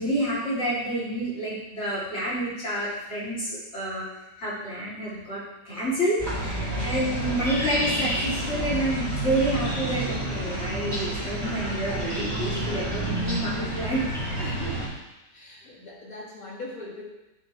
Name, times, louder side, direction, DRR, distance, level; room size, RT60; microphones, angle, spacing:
voice 1, 0.0-4.0 4.4-14.0, right 1 dB, 40° left, -9 dB, 3.3 m, -29 dB
sound 1, 6.2-14.9, right 1 dB, 15° right, 2.9 m, -29 dB
voice 2, 14.4-15.0 15.3-17.0, left 1 dB, 55° left, -4 dB, 2.2 m, -39 dB
9.9 x 5.8 x 3.2 m, 0.98 s
omnidirectional pair, 1.8 m